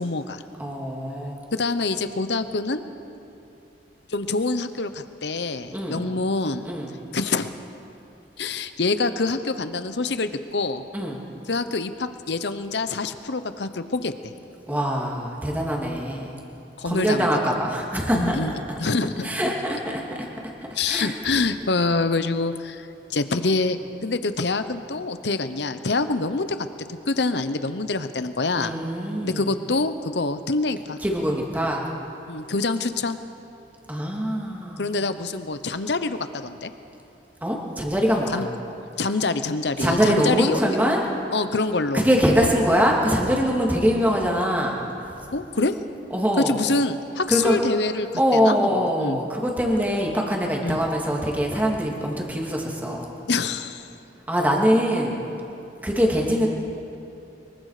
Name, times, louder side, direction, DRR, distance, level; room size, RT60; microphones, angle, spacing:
voice 1, 0.0-0.4 1.5-2.8 4.1-6.7 7.1-7.5 8.4-10.8 11.5-14.3 16.8-17.3 18.1-18.5 18.8-19.3 20.7-26.5 26.9-28.7 29.2-31.0 32.3-33.2 34.8-36.7 38.3-38.5 39.0-40.6 41.3-42.0 45.3-45.7 46.5-48.1 48.3-49.2 50.6-50.8 53.3-53.9, left 3 dB, 70° left, 11 dB, 0.9 m, -26 dB
voice 2, 0.6-1.4 5.7-6.0 6.6-6.9 10.9-11.2 14.7-16.3 16.8-18.8 19.2-20.3 20.6-21.1 28.6-29.5 31.0-31.8 33.9-34.8 37.4-38.5 39.8-41.0 41.9-45.2 46.1-46.5 47.3-47.6 48.2-53.1 54.3-55.2 55.8-56.5, equal, 10° right, -1 dB, 2.6 m, -23 dB
24.0 x 22.5 x 5.0 m, 2.9 s
head